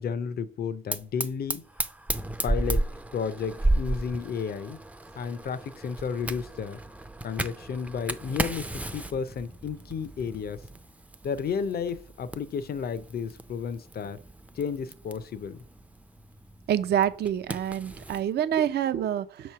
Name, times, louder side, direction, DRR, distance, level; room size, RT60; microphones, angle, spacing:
voice 1, 0.0-1.6 2.4-2.9 3.1-4.8 5.1-6.8 7.2-10.6 11.2-14.2 14.5-15.6, left 6 dB, 50° left, 0.6 m, -32 dB
Fire, 0.9-18.2, right 2 dB, 5° right, 0.4 m, -34 dB
voice 2, 16.7-19.5, right 10 dB, 55° right, 0.5 m, -27 dB
6.5 x 3.1 x 5.6 m
cardioid pair, 90°, 20 cm